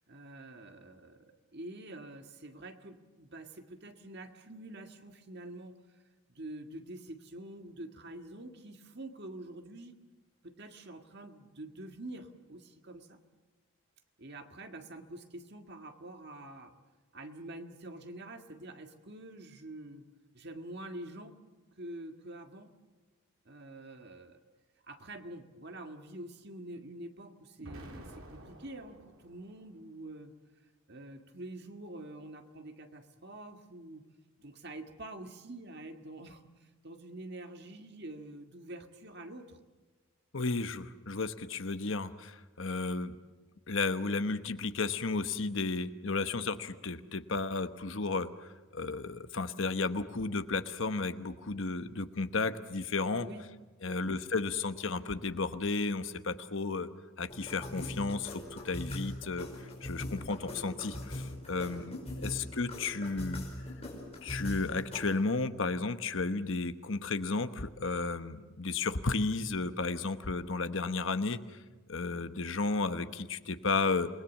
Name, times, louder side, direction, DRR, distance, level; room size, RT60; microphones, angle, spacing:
voice 1, 0.1-6.0 6.3-9.9 10.4-13.2 14.2-16.8 17.1-20.0 20.3-21.4 21.8-22.7 23.5-24.4 24.8-30.3 30.9-34.0 34.4-39.6 53.2-53.5 53.8-54.1 61.7-61.8 62.1-62.3, right 1 dB, 50° right, 6 dB, 1.7 m, -46 dB
Explosion, 27.6-29.7, right 1 dB, 70° right, 3.3 m, -50 dB
voice 2, 40.3-43.2 43.7-53.3 53.8-56.9 57.2-63.4 64.2-71.6 71.9-74.1, left 3 dB, 60° left, 10 dB, 1.1 m, -33 dB
sound 1, 57.3-65.2, left 1 dB, 30° left, 5.3 m, -41 dB
28.5 x 20.0 x 7.3 m, 1.3 s
head